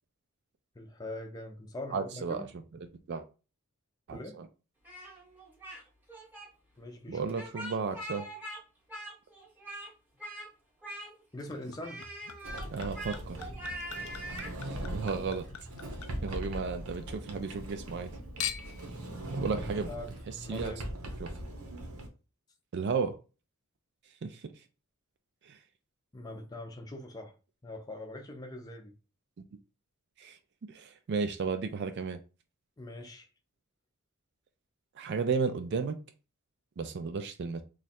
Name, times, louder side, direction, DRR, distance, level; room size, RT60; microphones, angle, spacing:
voice 1, 0.8-2.5 4.1-4.4 6.8-7.3 11.3-12.0 19.9-20.1 20.4-20.8 26.1-27.3 27.6-28.9 32.8-33.3, left 1 dB, 20° left, 0.5 m, -42 dB
voice 2, 1.9-2.5 3.1-3.3 4.1-4.5 7.1-8.2 12.7-13.5 14.5-15.5 16.2-18.1 19.3-19.9 20.3-20.7 21.2-21.3 22.7-23.2 24.2-24.5 25.4-25.6 30.2-30.4 30.7-32.2 35.0-36.0 36.8-37.6, right 5 dB, 50° right, 0.3 m, -33 dB
Speech, 4.8-5.8 6.1-6.5 7.3-8.6 8.9-9.9 10.2-10.5 10.8-11.4 11.8-14.6, right 1 dB, 10° right, 0.9 m, -42 dB
Chink clink / Liquid, 11.5-17.0 17.4-18.0 18.4-18.9 19.6-19.7, left 9 dB, 85° left, 0.5 m, -43 dB
Sliding door, 12.4-22.1, right 1 dB, 90° right, 0.9 m, -40 dB
3.1 x 2.4 x 4.2 m
head